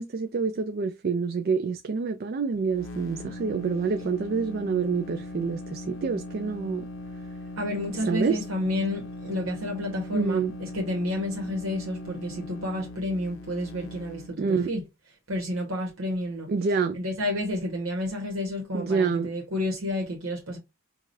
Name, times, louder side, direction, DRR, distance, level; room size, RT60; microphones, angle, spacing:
voice 1, 0.0-6.8 8.1-8.4 10.1-10.5 14.4-14.7 16.5-17.0 18.7-19.3, right 5 dB, 45° right, 0.4 m, -27 dB
sound 1, 2.6-14.3, left 1 dB, 75° left, 0.7 m, -39 dB
voice 2, 7.6-14.8 15.3-16.5 16.9-20.6, left 1 dB, 85° right, 1.2 m, -30 dB
4.8 x 2.4 x 2.6 m
head